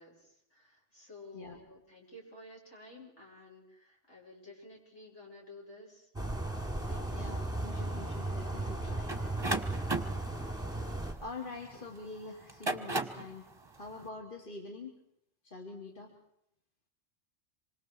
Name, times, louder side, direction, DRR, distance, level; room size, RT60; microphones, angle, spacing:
voice 1, 0.0-7.2, left 2 dB, 75° left, -1 dB, 6.6 m, -53 dB
sound 1, 6.2-11.1, right 2 dB, 5° right, 2.9 m, -36 dB
voice 2, 7.1-9.2 11.2-13.5 13.8-14.9 15.4-16.1, left 3 dB, 45° left, 0 dB, 3.0 m, -45 dB
sound 2, 9.1-11.8 12.4-13.3, right 2 dB, 20° right, 1.4 m, -35 dB
26.5 x 25.5 x 4.6 m, 0.75 s
omnidirectional pair, 1.2 m